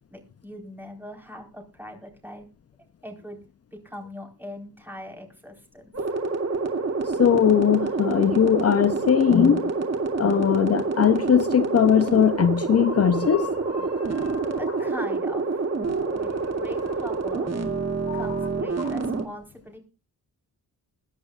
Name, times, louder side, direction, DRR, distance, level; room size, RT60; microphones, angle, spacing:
voice 1, 0.1-2.5 3.0-3.5 3.7-6.1 14.2-15.6 16.1-17.5 18.1-19.8, equal, 5° right, 4.2 m, -41 dB
sound 1, 5.9-19.2, right 4 dB, 45° right, 2.7 m, -27 dB
voice 2, 7.0-9.7 10.2-14.5 18.1-18.2, left 8 dB, 45° left, 0.6 m, -20 dB
22.5 x 10.5 x 2.4 m
wide cardioid pair, 130°, 37 cm